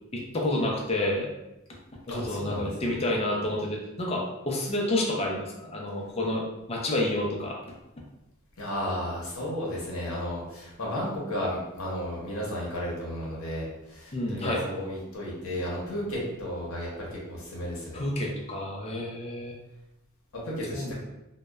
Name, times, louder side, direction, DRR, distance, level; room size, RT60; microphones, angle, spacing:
voice 1, 0.1-1.3 2.1-7.6 14.1-14.6 17.9-19.6 20.7-20.9, left 1 dB, 30° left, -1 dB, 0.4 m, -29 dB
voice 2, 2.1-2.7 8.6-18.0 20.4-20.9, equal, 75° left, -4 dB, 0.8 m, -33 dB
2.7 x 2.0 x 2.2 m, 0.93 s
head